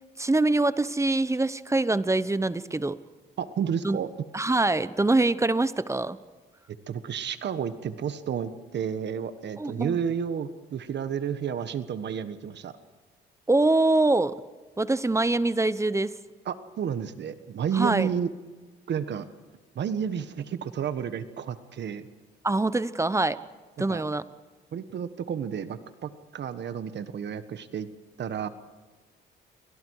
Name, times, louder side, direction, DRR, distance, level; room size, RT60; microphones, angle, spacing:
voice 1, 0.2-3.0 3.8-4.0 4.3-6.2 9.6-10.0 13.5-14.4 14.8-16.1 17.7-18.1 22.4-23.4 23.8-24.2, right 2 dB, 15° right, 15 dB, 0.9 m, -24 dB
voice 2, 3.4-4.1 6.9-12.8 16.4-18.3 18.9-19.3 19.7-22.1 23.9-24.0 24.7-27.9 28.2-28.5, right 8 dB, 60° right, 11 dB, 1.5 m, -31 dB
29.5 x 24.0 x 4.9 m, 1.3 s
cardioid pair, 90°, 20 cm